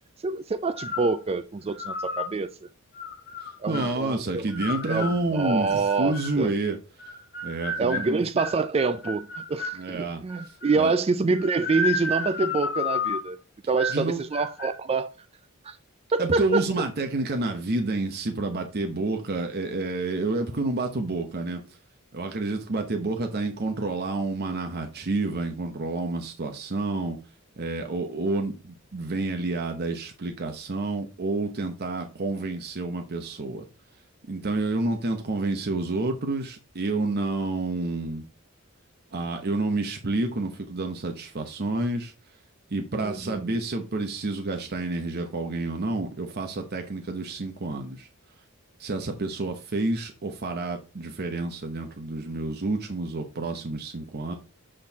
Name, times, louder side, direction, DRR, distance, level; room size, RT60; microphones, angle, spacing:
voice 1, 0.2-2.5 3.6-4.5 4.9-6.5 7.8-13.4 13.7-15.1 15.6-15.8 16.1-16.9 43.0-43.6, right 4 dB, 30° right, 0.4 m, -26 dB
sound 1, 0.7-1.2 1.7-2.3 2.9-3.9 4.5-6.4 7.0-9.8 10.3-10.9 11.3-13.3 13.8-14.1 14.3-14.8, left 2 dB, 50° left, 1.8 m, -32 dB
voice 2, 3.4-6.8 7.4-8.2 9.7-10.9 13.9-14.2 16.2-21.6 22.1-27.2 27.6-33.6 34.3-38.3 39.1-42.1 42.7-48.1 48.8-54.3, right 2 dB, 50° right, 0.9 m, -29 dB
7.6 x 4.3 x 3.5 m
head